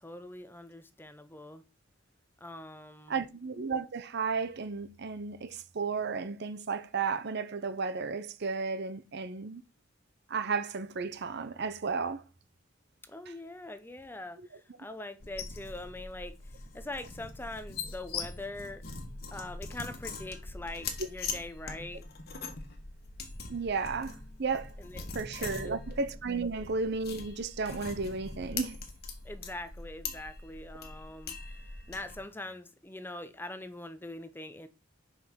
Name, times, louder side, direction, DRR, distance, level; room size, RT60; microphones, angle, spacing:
voice 1, 0.0-1.6 2.4-3.3 13.1-16.4 16.7-18.8 19.3-22.0 24.8-25.1 25.3-25.8 26.3-26.4 29.2-31.6 31.9-34.7, left 2 dB, 10° left, 0.7 m, -43 dB
voice 2, 3.1-9.6 10.3-12.2 23.5-24.7 25.1-28.8, right 4 dB, 55° right, 0.6 m, -33 dB
sound 1, 15.2-32.2, left 4 dB, 50° left, 1.5 m, -42 dB
6.0 x 5.3 x 6.1 m
head